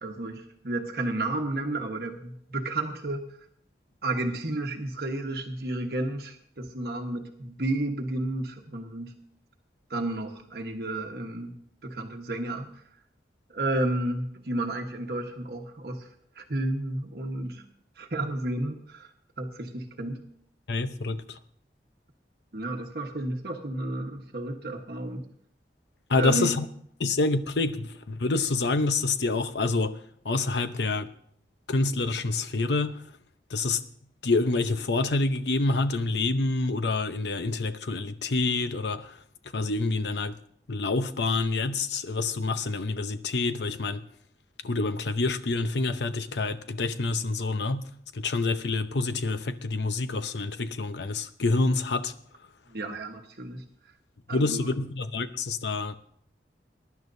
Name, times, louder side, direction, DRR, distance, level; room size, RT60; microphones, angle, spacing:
voice 1, 0.0-3.2 4.0-9.1 9.9-11.6 11.8-12.7 13.5-16.1 16.4-17.6 18.0-19.1 19.4-20.2 22.5-25.2 26.1-26.5 52.7-53.6 54.3-54.8, right 2 dB, 60° right, 1.3 m, -32 dB
voice 2, 20.7-21.4 26.1-26.6 27.0-30.0 30.2-31.1 31.7-33.0 33.5-33.8 34.2-39.1 39.5-40.3 40.7-44.0 44.6-47.8 48.1-52.1 54.3-56.0, left 3 dB, 80° left, 0.8 m, -27 dB
21.5 x 11.0 x 2.7 m
head